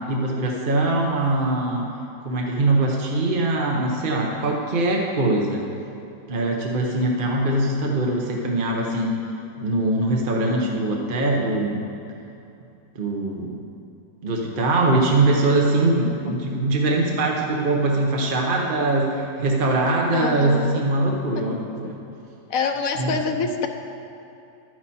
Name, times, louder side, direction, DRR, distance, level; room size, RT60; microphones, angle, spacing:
voice 1, 0.1-1.9 2.2-5.7 6.3-9.1 9.6-11.8 12.9-13.6 14.2-21.9 23.0-23.1, right 2 dB, 40° right, -1 dB, 1.1 m, -22 dB
voice 2, 20.1-20.8 21.4-21.5 21.8-21.9 22.5-23.7, left 5 dB, 70° left, 5 dB, 1.1 m, -26 dB
11.5 x 9.2 x 4.3 m, 2.7 s
omnidirectional pair, 1.6 m